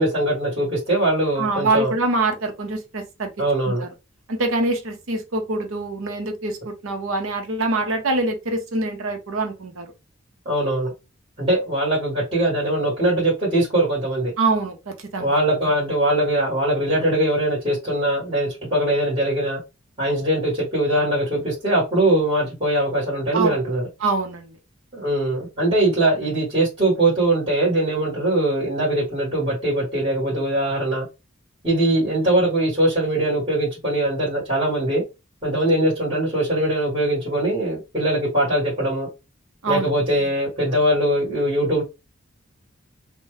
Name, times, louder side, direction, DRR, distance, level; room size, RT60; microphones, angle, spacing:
voice 1, 0.0-1.9 3.4-3.8 10.4-10.9 11.4-14.3 15.2-19.6 20.0-23.9 24.9-31.0 31.6-35.0 35.4-39.1 39.7-41.8, right 1 dB, 25° right, 1.4 m, -21 dB
voice 2, 1.4-3.3 3.7-3.8 4.3-9.9 14.4-15.3 23.3-23.6 24.0-24.5 39.6-39.9, right 2 dB, 90° right, 0.8 m, -24 dB
2.8 x 2.2 x 3.1 m
head